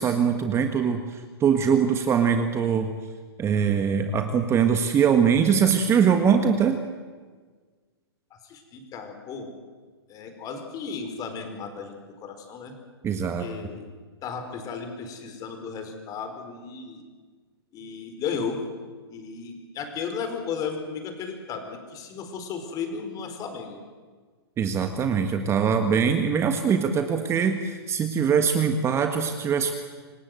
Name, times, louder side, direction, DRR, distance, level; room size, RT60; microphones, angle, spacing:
voice 1, 0.0-2.9 3.4-6.8 13.0-13.5 24.6-29.7, right 7 dB, 20° right, 7 dB, 1.5 m, -22 dB
voice 2, 8.4-9.5 10.1-11.9 12.2-12.7 13.4-13.9 14.2-17.0 17.7-18.6 19.1-23.8, left 6 dB, 25° left, 6 dB, 4.6 m, -34 dB
27.0 x 18.0 x 7.8 m, 1.5 s
hypercardioid pair, 130°, 13 cm